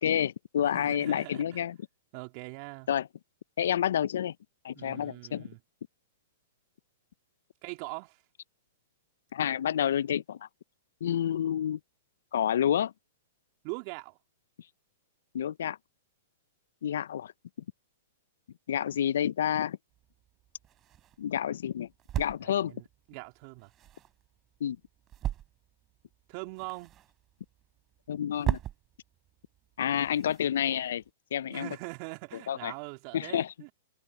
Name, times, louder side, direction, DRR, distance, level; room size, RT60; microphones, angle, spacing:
voice 1, 0.0-1.8 2.9-3.1 3.6-4.3 4.6-5.5 9.3-10.5 11.0-11.8 12.3-12.9 15.3-15.8 16.8-17.3 18.7-19.8 21.2-21.9 22.2-22.8 24.6-24.8 28.1-28.6 29.8-31.0 31.3-31.7 32.5-32.7 33.1-33.5, left 10 dB, 70° left, 0.6 m, -29 dB
voice 2, 0.6-1.6 2.1-2.9 4.7-5.6 7.6-8.2 13.6-14.2 22.4-23.7 26.3-26.9 31.5-33.7, right 30 dB, 45° right, 3.6 m, -42 dB
sound 1, 19.9-31.1, right 12 dB, 30° right, 5.7 m, -40 dB
hypercardioid pair, 120°, 0 cm